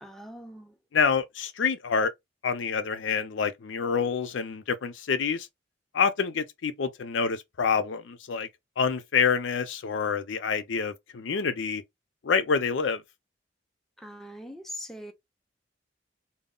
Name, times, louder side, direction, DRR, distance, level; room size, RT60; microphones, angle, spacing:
voice 1, 0.0-0.7 14.0-15.1, equal, ahead, 0.5 m, -42 dB
voice 2, 0.9-2.1 2.4-5.5 5.9-8.5 8.8-11.8 12.2-13.0, left 6 dB, 85° left, 0.5 m, -27 dB
2.2 x 2.0 x 3.6 m
head